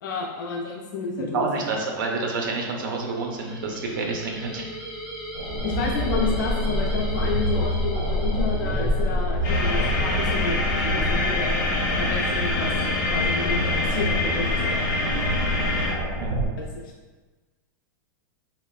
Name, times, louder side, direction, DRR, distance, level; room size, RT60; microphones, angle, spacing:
voice 1, 0.0-1.5 5.6-11.7 12.0-12.7 13.1-14.9 16.6-16.9, left 4 dB, 70° left, -1 dB, 0.4 m, -31 dB
voice 2, 1.3-4.6 15.4-15.6 16.2-16.4, right 3 dB, 70° right, 1 dB, 0.6 m, -28 dB
sound 1, 3.0-9.3, right 1 dB, ahead, 0.7 m, -38 dB
sound 2, 5.3-16.5, equal, 40° right, 1.0 m, -27 dB
sound 3, 9.4-15.9, left 2 dB, 35° left, 0.8 m, -26 dB
4.1 x 2.1 x 2.3 m, 1.3 s
supercardioid pair, 150°, 11 cm